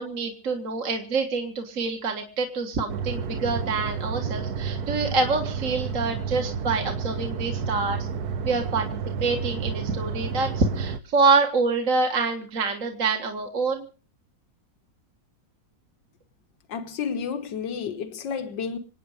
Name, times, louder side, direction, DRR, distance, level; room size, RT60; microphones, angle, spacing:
voice 1, 0.0-8.1 8.5-13.9, right 4 dB, 50° right, 1.9 m, -26 dB
sound 1, 2.9-11.0, right 6 dB, 65° right, 1.4 m, -30 dB
voice 2, 16.7-18.8, left 6 dB, 85° left, 1.9 m, -31 dB
27.0 x 9.3 x 4.9 m
omnidirectional pair, 1.9 m